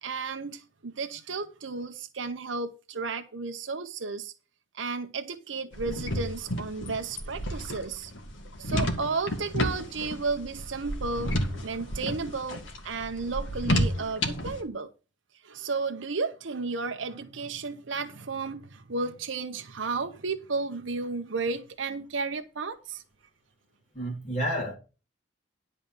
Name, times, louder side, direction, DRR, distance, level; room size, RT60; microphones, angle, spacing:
voice 1, 0.0-4.3 4.7-8.1 8.6-14.9 15.4-23.0, right 4 dB, 80° right, 0.8 m, -33 dB
sound 1, 5.7-14.6, equal, 85° left, 1.9 m, -31 dB
voice 2, 23.9-24.7, equal, 40° left, 3.9 m, -30 dB
10.5 x 4.3 x 7.4 m
head